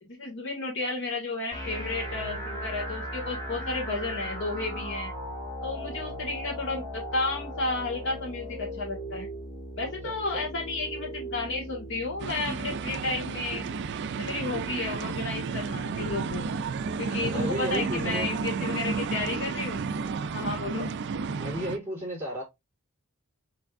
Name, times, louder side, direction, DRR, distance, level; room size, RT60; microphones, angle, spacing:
voice 1, 0.0-5.1 5.6-9.3 9.8-13.7 14.2-16.5 17.0-19.9 20.3-20.9, left 3 dB, 55° left, 1.7 m, -32 dB
sound 1, 1.5-15.5, equal, 15° left, 2.6 m, -38 dB
voice 2, 10.0-10.4 17.2-18.3 21.4-22.4, equal, 10° right, 3.4 m, -34 dB
sound 2, 12.2-21.8, right 5 dB, 50° right, 0.4 m, -32 dB
5.8 x 3.3 x 2.5 m
head